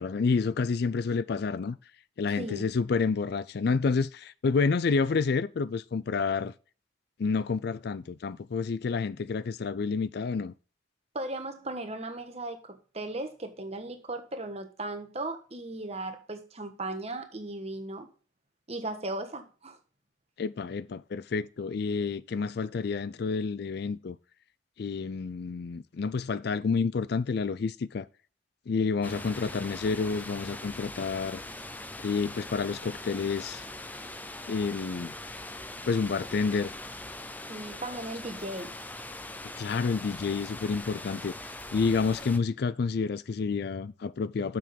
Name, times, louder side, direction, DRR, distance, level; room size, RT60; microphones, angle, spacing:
voice 1, 0.0-1.8 2.2-6.5 7.2-10.5 20.4-24.2 24.8-28.1 28.7-31.4 32.0-33.6 34.5-35.1 35.9-36.7 39.6-44.6, left 4 dB, 55° left, 0.4 m, -29 dB
voice 2, 11.1-18.1 18.7-19.8 37.5-38.7, right 2 dB, 35° right, 1.4 m, -37 dB
sound 1, 29.0-42.4, left 2 dB, 10° left, 0.6 m, -41 dB
7.4 x 6.1 x 5.2 m
head